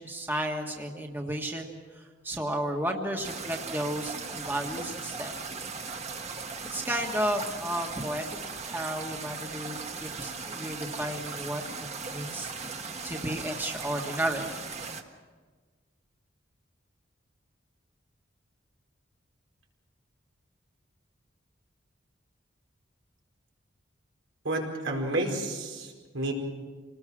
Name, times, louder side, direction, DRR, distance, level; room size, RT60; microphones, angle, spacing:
voice 1, 0.0-5.3 6.7-8.3 8.6-11.6 12.1-12.5 13.0-14.6, right 1 dB, 10° right, 2 dB, 1.6 m, -33 dB
sound 1, 3.2-15.0, right 4 dB, 35° right, 1.5 m, -38 dB
voice 2, 24.4-26.3, right 2 dB, 85° right, 0 dB, 4.9 m, -30 dB
27.0 x 19.5 x 6.2 m, 1.4 s
head